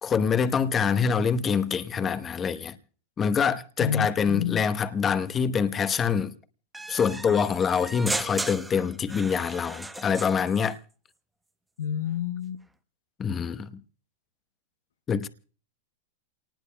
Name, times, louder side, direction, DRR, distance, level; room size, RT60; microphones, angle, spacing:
voice 1, 0.0-2.8 3.2-6.3 6.9-10.8 13.2-13.7 15.1-15.3, left 6 dB, 25° left, 0.9 m, -25 dB
voice 2, 3.8-4.6 11.8-12.6, left 8 dB, 90° left, 0.7 m, -29 dB
sound 1, 6.7-10.8, right 2 dB, 5° right, 0.8 m, -36 dB
28.5 x 19.0 x 2.2 m
hypercardioid pair, 120°, 0 cm